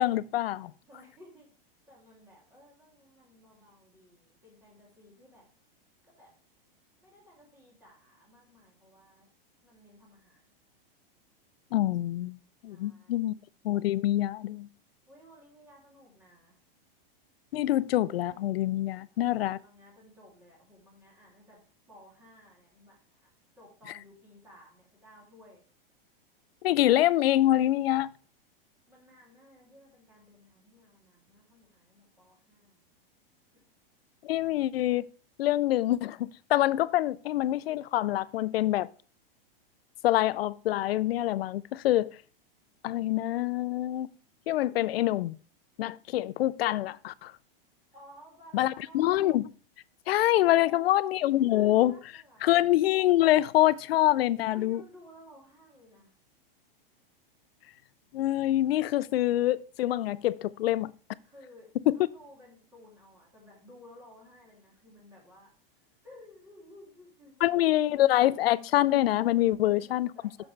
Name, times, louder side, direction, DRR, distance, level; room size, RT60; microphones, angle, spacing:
voice 1, 0.0-0.7 11.7-12.4 12.6-13.3 13.6-14.7 17.5-19.6 26.6-28.1 34.2-35.0 35.4-38.9 40.0-42.1 42.8-44.1 44.5-45.3 45.8-47.3 48.5-49.4 50.1-51.9 52.4-54.8 58.1-60.9 61.9-62.0 67.4-70.1, left 14 dB, 90° left, 0.5 m, -25 dB
voice 2, 0.8-1.5 1.9-5.5 6.0-6.3 7.0-9.3 9.6-10.5 12.7-13.3 15.1-16.6 19.1-21.6 21.9-23.3 23.6-25.6 28.9-32.8 47.9-49.3 50.4-52.5 54.5-56.1 61.2-65.5 66.0-68.4 69.3-70.5, left 1 dB, 10° right, 2.8 m, -56 dB
8.4 x 7.1 x 3.3 m
supercardioid pair, 170°, 29 cm